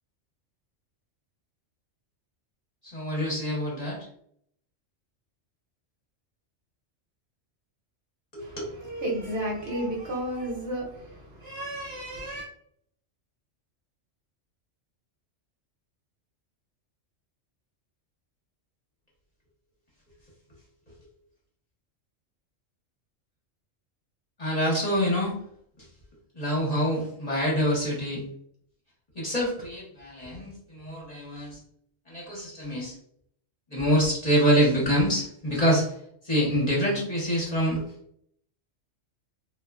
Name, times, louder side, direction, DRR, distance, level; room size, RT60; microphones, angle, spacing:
voice 1, 2.8-4.1 8.3-8.5 24.4-25.3 25.8-25.9 26.3-28.2 29.1-31.6 32.1-33.0 33.7-36.0 36.2-37.8, equal, 35° left, -5 dB, 0.9 m, -26 dB
voice 2, 8.4-12.5, right 1 dB, 60° right, -1 dB, 1.0 m, -33 dB
2.9 x 2.3 x 2.3 m, 0.66 s
omnidirectional pair, 1.3 m